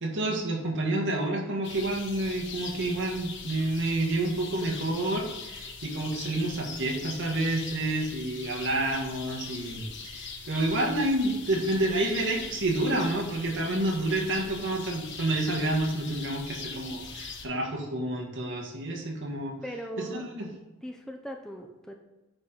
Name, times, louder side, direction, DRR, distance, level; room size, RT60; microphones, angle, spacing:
voice 1, 0.0-19.5 20.0-20.5, right 1 dB, 60° right, 0 dB, 1.6 m, -29 dB
sound 1, 1.6-17.5, left 5 dB, 55° left, 1.0 m, -41 dB
voice 2, 19.6-20.3 20.8-22.0, right 1 dB, 5° left, 2 dB, 0.5 m, -39 dB
8.6 x 3.9 x 4.4 m, 1.1 s
head